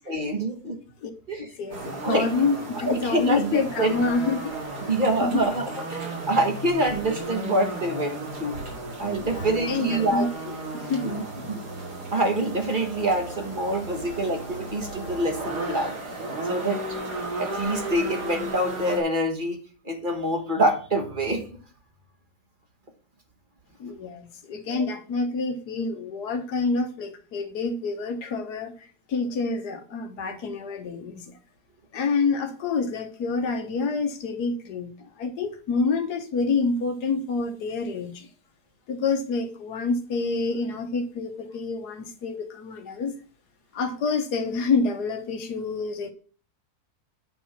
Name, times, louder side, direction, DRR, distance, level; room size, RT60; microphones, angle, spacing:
voice 1, 0.1-0.8 1.3-1.5 2.0-2.3 2.9-3.9 4.9-8.6 9.0-10.3 11.0-11.2 11.5-11.6 12.1-15.9 16.4-16.8 17.4-19.6 19.8-21.5 24.7-24.8, right 1 dB, 30° right, 1.6 m, -26 dB
voice 2, 1.6-4.5 5.2-5.5 9.2-11.5 23.8-28.7 29.1-31.3 31.9-38.3 38.9-43.2 43.7-46.1, left 4 dB, 70° left, 1.7 m, -28 dB
sound 1, 1.7-19.0, right 2 dB, 75° right, 3.1 m, -35 dB
9.1 x 4.6 x 5.7 m
omnidirectional pair, 1.8 m